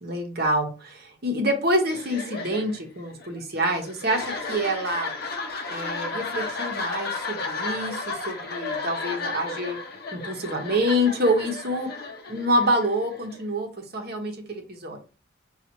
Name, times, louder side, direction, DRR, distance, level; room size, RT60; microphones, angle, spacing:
voice 1, 0.0-5.1 5.7-9.8 10.1-11.9 12.3-14.3 14.8-15.0, equal, 50° right, 3 dB, 0.9 m, -26 dB
sound 1, 1.8-13.5, left 3 dB, 50° left, 0.7 m, -33 dB
5.6 x 2.4 x 2.9 m, 0.33 s
head